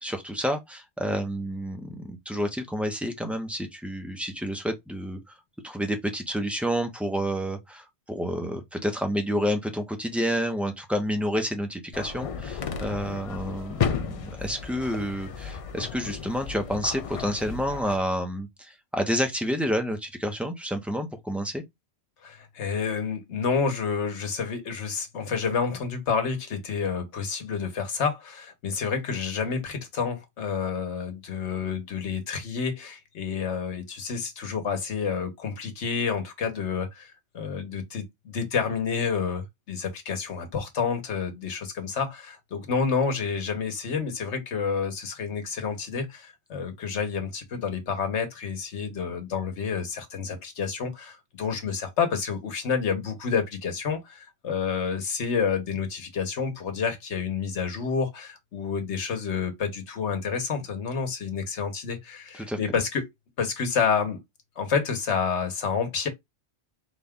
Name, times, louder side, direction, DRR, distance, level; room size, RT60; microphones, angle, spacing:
voice 1, 0.0-5.2 5.6-21.6 62.3-62.6, equal, ahead, 0.6 m, -29 dB
sound 1, 11.9-18.0, left 7 dB, 60° left, 0.3 m, -33 dB
voice 2, 22.2-63.0 63.4-64.2 64.6-66.1, left 6 dB, 85° left, 1.3 m, -29 dB
4.1 x 2.3 x 3.6 m
omnidirectional pair, 1.1 m